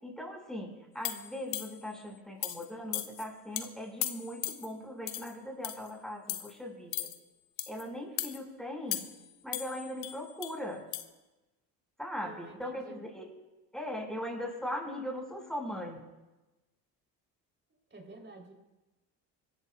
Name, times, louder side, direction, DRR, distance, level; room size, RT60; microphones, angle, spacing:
voice 1, 0.0-7.1 7.7-9.0 9.4-10.9 12.0-13.3 13.7-16.0, equal, ahead, 0 dB, 5.8 m, -39 dB
sound 1, 1.0-1.9 2.4-2.7 2.9-3.3 3.6-3.7 4.0-4.7 5.1-5.3 5.6-5.9 6.3-6.5 6.9-7.2 7.6-7.8 8.2-8.4 8.9-9.3 9.5-10.5 10.9-11.0, left 14 dB, 90° left, 1.0 m, -36 dB
voice 2, 12.2-13.0 17.7-18.5, right 3 dB, 25° right, 1 dB, 3.8 m, -50 dB
25.5 x 14.0 x 2.4 m, 1.1 s
hypercardioid pair, 65°, 48 cm